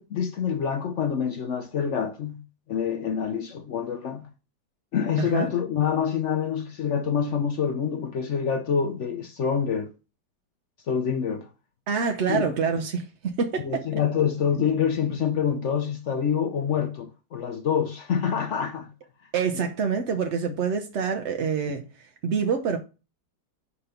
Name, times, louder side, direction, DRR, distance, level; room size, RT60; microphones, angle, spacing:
voice 1, 0.0-2.4 2.7-4.2 4.9-9.9 10.9-11.5 12.3-12.5 13.6-18.9 19.5-19.6 20.5-20.6 21.7-21.8, left 7 dB, 70° left, 0.7 m, -26 dB
voice 2, 11.9-13.8 19.3-22.8, right 6 dB, 60° right, 0.7 m, -26 dB
5.2 x 4.3 x 5.6 m
omnidirectional pair, 2.0 m